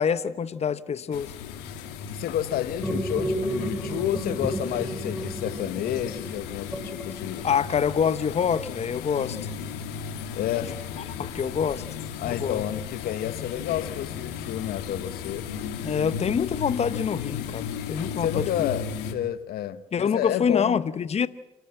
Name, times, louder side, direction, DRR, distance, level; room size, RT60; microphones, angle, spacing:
voice 1, 0.0-1.3 7.4-9.4 11.2-11.8 12.3-12.6 15.8-18.7 19.9-21.3, left 7 dB, 40° left, 0.9 m, -26 dB
sound 1, 1.1-19.1, left 7 dB, 85° left, 2.1 m, -35 dB
voice 2, 2.1-7.5 10.3-10.8 12.2-15.5 18.2-20.8, left 11 dB, 70° left, 0.9 m, -30 dB
sound 2, 2.8-7.6, equal, ahead, 5.2 m, -32 dB
28.0 x 12.0 x 8.8 m
supercardioid pair, 60°, 16 cm